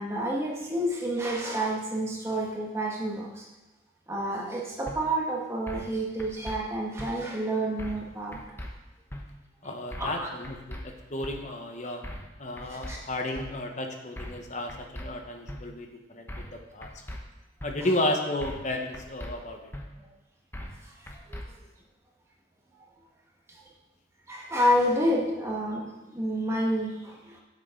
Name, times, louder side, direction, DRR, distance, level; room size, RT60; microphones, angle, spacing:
voice 1, 0.0-3.3 4.1-8.4 10.0-10.3 12.9-13.0 24.3-25.9 26.1-26.9, equal, 15° right, -3 dB, 1.5 m, -28 dB
sound 1, 4.9-5.0 5.7-5.9 6.2-6.6 7.0-7.1 7.8-8.1 8.3-8.7 9.1-9.2 9.9-10.2 10.4-10.8 11.2-11.4 12.0-12.3 12.6-12.9 13.3-13.5 14.2-14.4 14.7-15.1 15.5-15.6 16.3-16.6 16.8-17.2 17.6-17.7 18.4-18.7 18.9-19.3 19.7-19.8 20.5-20.8 21.1-21.4, left 1 dB, 10° left, 0.8 m, -39 dB
voice 2, 9.6-12.0 12.4-16.9 17.6-19.7, left 1 dB, 40° left, 4 dB, 1.0 m, -33 dB
9.5 x 7.5 x 3.8 m, 1.1 s
head